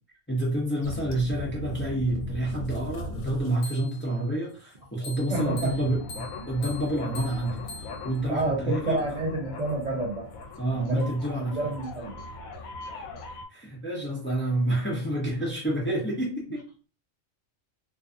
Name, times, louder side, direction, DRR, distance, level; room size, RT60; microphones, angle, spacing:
voice 1, 0.3-9.0 10.6-11.6 13.5-16.6, right 1 dB, 15° left, -4 dB, 0.4 m, -28 dB
sound 1, 0.8-4.2 5.0-13.4, left 2 dB, 80° left, 1.0 m, -39 dB
voice 2, 5.3-5.7 8.3-10.3 10.7-11.1 11.5-12.2, right 2 dB, 65° right, -3 dB, 0.4 m, -29 dB
2.6 x 2.3 x 2.5 m, 0.38 s
omnidirectional pair, 1.5 m